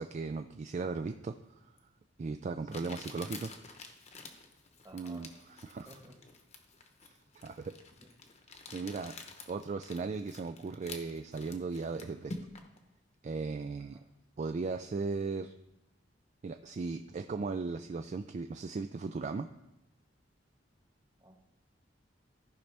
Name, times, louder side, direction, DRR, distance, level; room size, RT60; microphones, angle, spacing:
voice 1, 0.0-1.3 2.2-3.5 4.9-5.3 5.6-5.9 7.4-7.7 8.7-9.1 9.5-12.3 13.2-14.0 14.4-15.5 16.4-19.5, right 4 dB, 40° right, 7 dB, 0.3 m, -37 dB
Crumpling crinkling, 1.8-1.9 2.7-12.8, left 3 dB, 35° left, 0.9 m, -49 dB
voice 2, 2.7-3.1 4.8-5.3 5.9-6.2 7.2-7.4 8.0-8.1 13.8-14.0 21.2-21.4, right 1 dB, 20° right, 2 dB, 1.4 m, -54 dB
14.0 x 5.3 x 3.4 m, 0.94 s
head